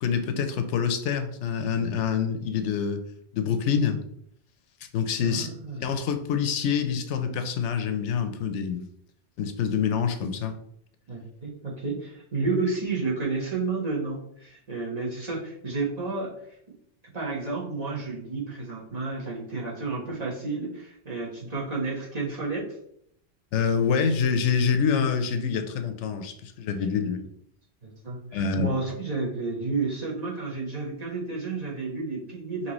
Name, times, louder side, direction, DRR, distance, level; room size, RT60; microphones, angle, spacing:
voice 1, 0.0-3.0 3.3-4.0 4.9-5.5 5.8-8.9 9.4-10.5 23.5-27.3 28.3-28.7, left 6 dB, 85° left, 8 dB, 0.9 m, -26 dB
voice 2, 5.2-5.8 11.1-16.3 17.1-22.6 27.8-32.7, right 3 dB, 35° right, -4 dB, 1.2 m, -31 dB
5.2 x 2.9 x 3.0 m, 0.70 s
omnidirectional pair, 1.2 m